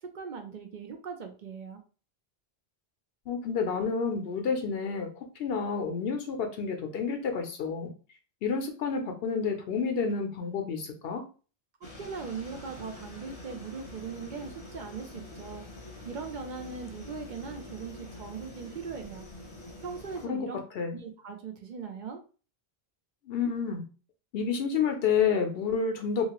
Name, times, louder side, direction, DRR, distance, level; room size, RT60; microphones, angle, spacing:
voice 1, 0.0-1.8 12.0-15.6 16.0-19.2 19.8-20.6 20.9-22.2, right 5 dB, 55° right, 5 dB, 0.6 m, -39 dB
voice 2, 3.3-5.1 5.4-7.9 8.4-11.3 20.2-20.5 20.8-21.0 23.3-23.8 24.3-26.3, left 6 dB, 75° left, 5 dB, 0.8 m, -29 dB
sound 1, 11.8-20.3, left 2 dB, 35° left, 0.6 m, -46 dB
2.9 x 2.4 x 2.9 m, 0.37 s
omnidirectional pair, 1.1 m